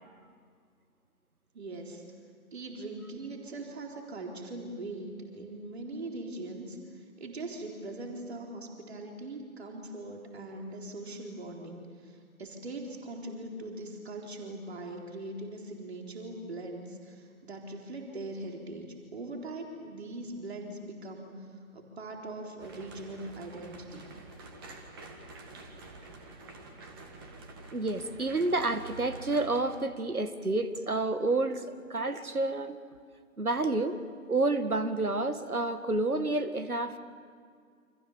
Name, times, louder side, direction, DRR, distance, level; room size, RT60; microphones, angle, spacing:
voice 1, 1.5-2.0 2.5-18.9 19.1-21.3 21.7-24.1, right 2 dB, 45° right, 1 dB, 4.1 m, -41 dB
sound 1, 22.6-29.6, right 2 dB, 15° right, 1.8 m, -48 dB
voice 2, 27.7-32.8 33.4-34.0 34.3-37.0, right 2 dB, 90° right, 10 dB, 2.2 m, -29 dB
28.5 x 26.5 x 7.3 m, 2.1 s
figure-of-eight pair, 155°, 42 cm